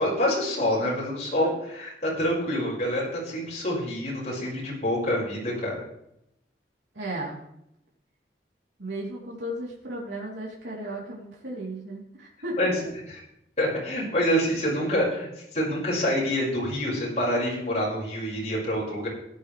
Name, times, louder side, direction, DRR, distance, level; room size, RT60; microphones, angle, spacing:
voice 1, 0.0-5.8 12.6-12.7 13.6-19.1, equal, 40° left, -5 dB, 5.8 m, -26 dB
voice 2, 6.9-7.4 8.8-12.6, right 1 dB, 80° right, -4 dB, 3.5 m, -35 dB
16.5 x 11.0 x 3.4 m, 0.77 s
head